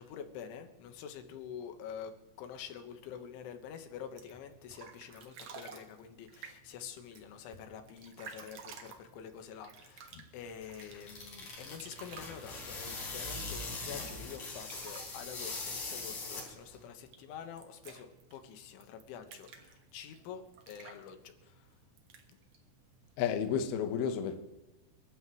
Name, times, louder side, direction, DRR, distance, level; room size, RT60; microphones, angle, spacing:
voice 1, 0.0-21.8, left 8 dB, 85° left, 3.8 m, -47 dB
sound 1, 4.0-23.6, right 6 dB, 65° right, 1.8 m, -55 dB
sound 2, 10.4-16.8, left 3 dB, 45° left, 4.7 m, -41 dB
voice 2, 23.2-24.4, left 7 dB, 70° left, 2.8 m, -31 dB
29.5 x 12.0 x 3.2 m
omnidirectional pair, 5.4 m